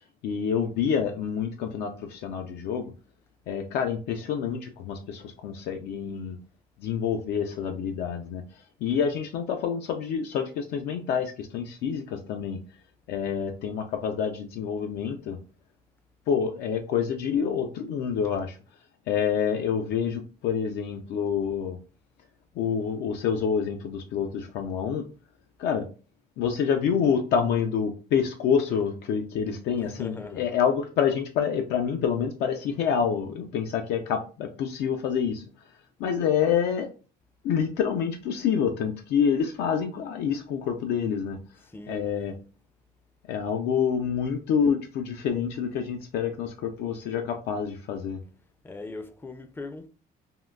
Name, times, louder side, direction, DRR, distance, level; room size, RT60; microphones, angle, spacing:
voice 1, 0.2-2.9 3.5-6.4 6.8-8.4 8.8-12.6 13.1-15.4 16.3-18.6 19.1-21.8 22.6-25.0 25.6-25.9 26.4-35.4 36.0-36.9 37.4-41.4 41.9-42.3 43.3-48.2, left 7 dB, 75° left, 0.4 m, -27 dB
voice 2, 29.7-30.5 41.6-42.1 48.6-49.9, left 3 dB, 15° left, 0.4 m, -40 dB
3.6 x 2.2 x 2.3 m
cardioid pair, 110°, 17 cm